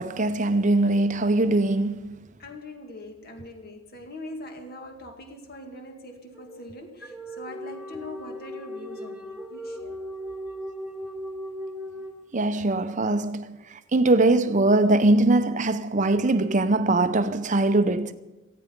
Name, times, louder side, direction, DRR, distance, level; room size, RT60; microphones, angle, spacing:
voice 1, 0.0-2.2 12.3-18.1, right 2 dB, 35° right, 0.7 m, -22 dB
voice 2, 2.4-10.0, left 1 dB, 45° left, 2.1 m, -42 dB
sound 1, 6.4-12.7, equal, 5° right, 1.0 m, -38 dB
18.5 x 14.5 x 5.3 m
head